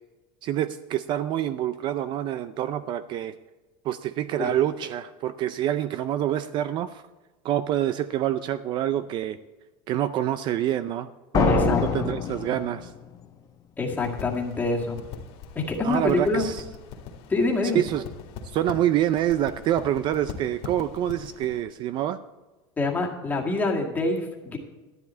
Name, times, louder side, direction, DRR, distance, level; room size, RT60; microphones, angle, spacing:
voice 1, 0.4-3.3 3.8-7.0 7.4-9.4 9.9-11.1 11.3-12.9 15.8-16.6 17.7-18.0 18.5-22.2, right 11 dB, 40° right, 13 dB, 0.4 m, -26 dB
sound 1, 11.3-13.2, left 7 dB, 30° left, 0.9 m, -25 dB
voice 2, 11.5-11.8 13.8-15.0 15.6-16.5 17.3-17.8 22.8-24.6, left 3 dB, 15° left, 0 dB, 1.9 m, -26 dB
sound 2, 13.9-21.6, left 6 dB, 55° left, 2.1 m, -42 dB
12.5 x 11.0 x 4.3 m, 1.2 s
cardioid pair, 150°, 12 cm